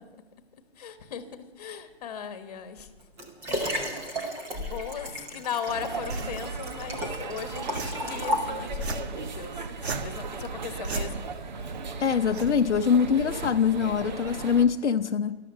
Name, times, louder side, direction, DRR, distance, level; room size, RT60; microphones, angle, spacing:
voice 1, 0.8-1.2 1.6-2.9 3.5-3.6 4.0-4.1 4.5-9.5 9.9-11.2, left 7 dB, 35° left, 9 dB, 1.4 m, -37 dB
Liquid, 2.8-9.0 9.7-9.8, equal, 5° right, 0.8 m, -33 dB
sound 1, 5.7-14.7, right 4 dB, 40° right, 1.1 m, -38 dB
sound 2, 6.1-14.1, right 3 dB, 65° right, 1.7 m, -39 dB
voice 2, 12.0-15.4, left 7 dB, 80° left, 7 dB, 0.8 m, -23 dB
13.5 x 11.5 x 6.7 m, 1.2 s
hypercardioid pair, 155°, 34 cm